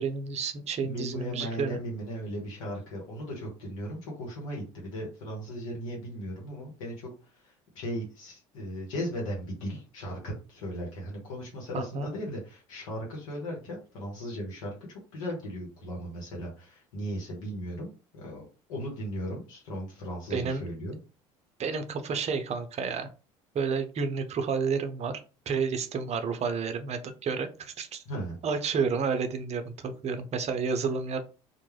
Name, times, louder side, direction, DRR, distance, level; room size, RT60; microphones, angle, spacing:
voice 1, 0.0-1.8 11.7-12.1 20.3-20.7 21.6-23.1 23.5-25.2 25.5-28.0 28.4-31.3, right 5 dB, 40° right, 8 dB, 0.5 m, -30 dB
voice 2, 0.8-21.0 28.1-28.4, equal, 85° left, -1 dB, 0.8 m, -37 dB
2.2 x 2.0 x 3.2 m, 0.34 s
hypercardioid pair, 75°, 17 cm